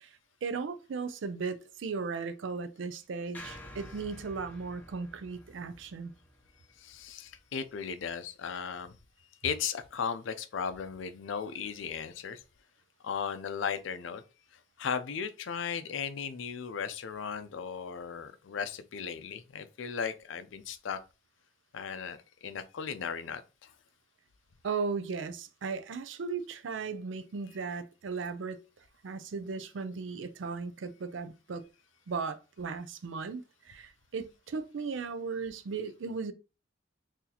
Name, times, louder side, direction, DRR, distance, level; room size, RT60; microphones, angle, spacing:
voice 1, 0.0-6.1 24.6-28.6 29.0-31.6 32.1-36.3, right 5 dB, 80° right, 0.4 m, -36 dB
sound 1, 3.3-7.6, left 1 dB, 10° left, 0.7 m, -50 dB
voice 2, 6.8-9.0 9.4-12.4 13.0-14.2 14.5-21.0 21.7-23.7, left 6 dB, 90° left, 0.4 m, -36 dB
3.9 x 2.7 x 2.8 m
head